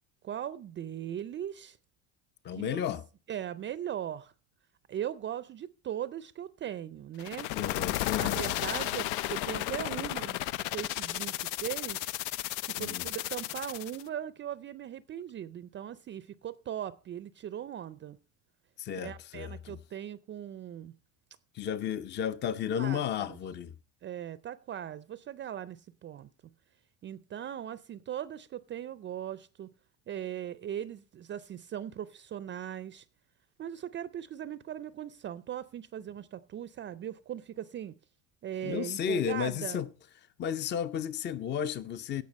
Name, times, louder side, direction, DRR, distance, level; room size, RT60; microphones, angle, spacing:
voice 1, 0.2-1.8 2.5-2.8 3.3-4.3 4.9-7.5 8.2-10.4 10.7-12.1 12.6-18.2 19.0-20.9 22.8-23.0 23.3-23.4 24.0-26.3 27.0-29.7 30.1-33.0 33.6-37.9 38.4-39.8, right 10 dB, 30° right, 0.5 m, -39 dB
voice 2, 2.4-3.0 7.5-8.4 12.8-13.1 18.8-19.8 21.5-23.7 38.6-39.9 40.4-42.2, left 8 dB, 30° left, 0.6 m, -33 dB
sound 1, 7.2-14.0, left 15 dB, 85° left, 0.6 m, -33 dB
16.0 x 5.9 x 5.2 m
supercardioid pair, 120°, 38 cm